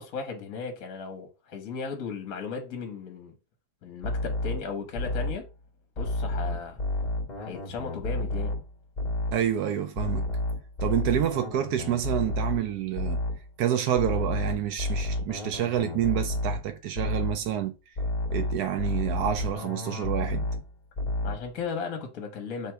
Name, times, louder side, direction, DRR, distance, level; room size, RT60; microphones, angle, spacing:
voice 1, 0.0-3.3 3.8-5.5 6.0-6.8 7.4-8.5 21.2-22.7, left 5 dB, 60° left, 1.2 m, -36 dB
sound 1, 4.0-5.5 6.0-8.7 9.0-9.5 10.0-13.5 14.0-16.7 17.0-17.5 18.0-20.7 21.0-21.5, left 1 dB, 30° left, 1.0 m, -30 dB
voice 2, 9.3-10.3 10.8-13.2 13.6-17.7 18.3-20.5, right 10 dB, 75° right, 1.1 m, -28 dB
3.3 x 2.9 x 4.4 m
omnidirectional pair, 1.8 m